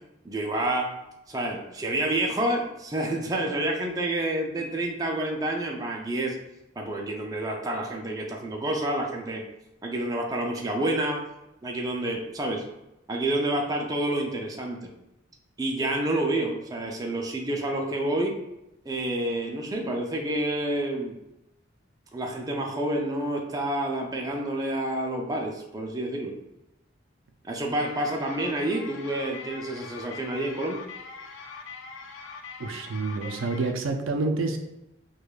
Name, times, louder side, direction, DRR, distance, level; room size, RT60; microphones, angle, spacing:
voice 1, 0.2-1.0 1.3-6.4 6.8-9.4 9.8-11.2 11.6-12.6 13.1-14.8 15.6-18.4 18.9-21.1 22.1-26.4 27.4-30.8, right 1 dB, 20° right, 0 dB, 0.3 m, -28 dB
sound 1, 27.8-33.7, left 5 dB, 70° left, 0.4 m, -42 dB
voice 2, 32.6-34.6, right 3 dB, 90° right, 5 dB, 0.4 m, -28 dB
4.7 x 2.2 x 2.3 m, 0.90 s
head